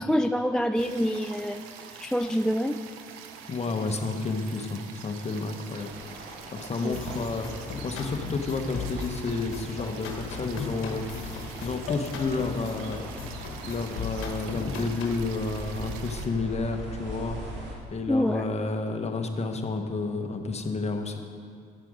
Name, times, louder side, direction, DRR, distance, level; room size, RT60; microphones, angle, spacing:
voice 1, 0.0-1.7 2.0-2.8 6.8-7.0 18.1-18.6, equal, 5° left, 7 dB, 0.3 m, -26 dB
sound 1, 0.7-16.3, right 7 dB, 80° right, 0.8 m, -45 dB
voice 2, 3.5-7.5 7.8-13.0 13.6-21.2, left 3 dB, 30° left, 5 dB, 1.1 m, -31 dB
sound 2, 5.7-17.8, right 1 dB, 60° right, 2.3 m, -43 dB
sound 3, 6.9-15.3, left 4 dB, 75° left, 1.3 m, -37 dB
11.5 x 7.6 x 5.0 m, 2.3 s
supercardioid pair, 75°, 21 cm